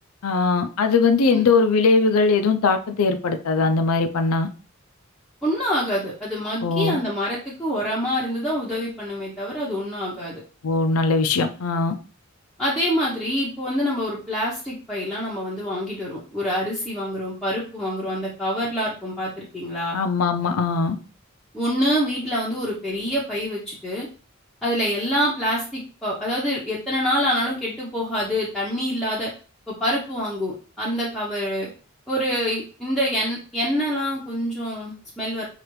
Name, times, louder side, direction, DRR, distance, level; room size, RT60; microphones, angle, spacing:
voice 1, 0.2-4.5 6.6-7.0 10.6-11.9 19.9-21.0, left 4 dB, 85° left, 0.5 m, -20 dB
voice 2, 5.4-10.4 12.6-20.0 21.5-24.1 24.6-29.3 29.7-31.7 32.1-35.5, equal, ahead, 0.8 m, -26 dB
4.8 x 2.5 x 3.1 m
head